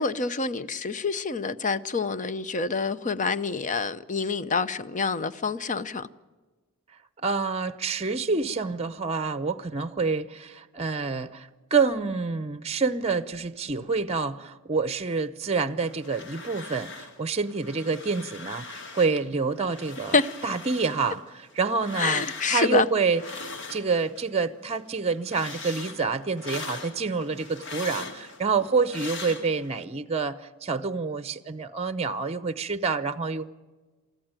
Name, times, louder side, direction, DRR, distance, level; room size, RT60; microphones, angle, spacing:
voice 1, 0.0-6.1 20.1-20.3 22.0-22.9, left 4 dB, 35° left, 0.7 m, -27 dB
voice 2, 7.2-23.4 23.7-33.5, right 4 dB, 30° right, 0.7 m, -27 dB
sound 1, 15.8-17.2 17.4-19.2 19.6-24.3 24.7-29.8, left 3 dB, 60° left, 2.3 m, -41 dB
24.0 x 14.5 x 9.0 m
head